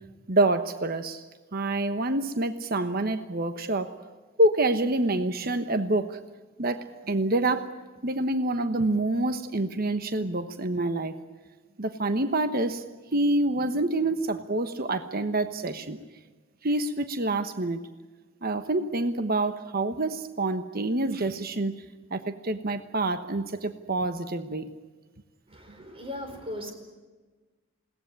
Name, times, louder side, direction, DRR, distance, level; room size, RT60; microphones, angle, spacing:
voice 1, 0.3-1.2 1.5-3.9 4.4-6.2 6.6-7.7 8.0-11.2 11.8-12.8 13.1-16.0 16.6-17.8 18.4-21.7 22.1-24.7, right 2 dB, 50° right, 9 dB, 1.1 m, -27 dB
voice 2, 25.5-26.7, left 1 dB, 30° right, 5 dB, 4.6 m, -38 dB
21.0 x 18.0 x 9.9 m, 1.3 s
head